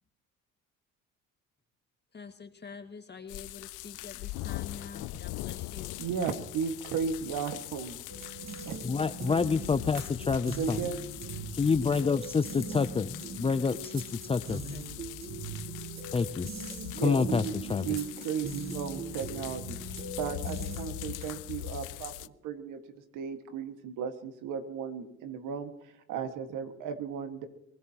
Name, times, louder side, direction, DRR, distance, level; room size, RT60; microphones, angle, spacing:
voice 1, 2.1-6.0 14.5-14.9, left 5 dB, 35° left, 6 dB, 2.0 m, -46 dB
sound 1, 3.3-22.3, left 18 dB, 75° left, 0.6 m, -42 dB
voice 2, 6.0-8.0 8.7-8.8 10.6-11.0 16.9-17.5 17.8-19.8 20.2-25.7 26.1-27.5, right 6 dB, 80° right, 7 dB, 1.8 m, -35 dB
sound 2, 8.1-21.5, right 4 dB, 55° right, 5.4 m, -41 dB
voice 3, 8.8-10.8 11.5-14.6 16.1-16.5 17.0-17.4 17.7-17.9, left 5 dB, 20° left, 13 dB, 0.5 m, -28 dB
24.0 x 19.5 x 3.0 m, 0.81 s
supercardioid pair, 80°, 31 cm